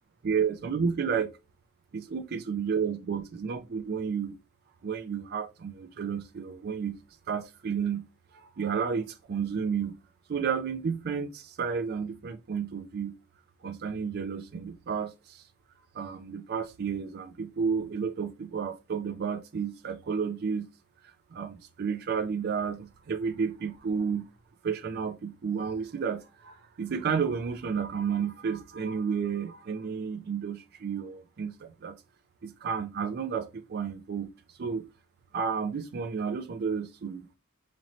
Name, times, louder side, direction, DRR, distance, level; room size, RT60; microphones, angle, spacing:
voice 1, 0.2-1.3 1.9-4.4 4.8-7.0 7.3-8.0 8.3-10.0 10.3-13.2 13.6-15.4 15.9-20.7 21.3-24.3 24.6-32.0 32.4-34.3 34.6-34.8 35.3-37.3, right 6 dB, 45° right, 0.4 m, -31 dB
4.1 x 3.0 x 2.6 m
head